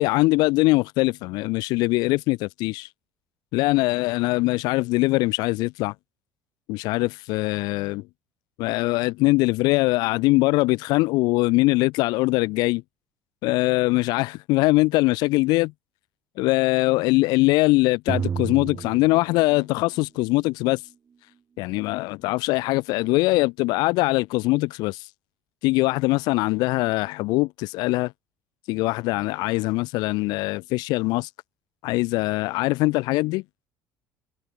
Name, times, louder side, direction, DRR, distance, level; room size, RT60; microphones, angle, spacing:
voice 1, 0.0-2.9 3.5-5.9 6.7-8.0 8.6-12.8 13.4-15.7 16.4-20.8 21.6-25.1 25.6-28.1 28.7-31.3 31.8-33.4, left 22 dB, 75° left, 0.9 m, -22 dB
sound 1, 18.1-20.2, right 6 dB, 30° right, 3.4 m, -31 dB
cardioid pair, 145°, 7 cm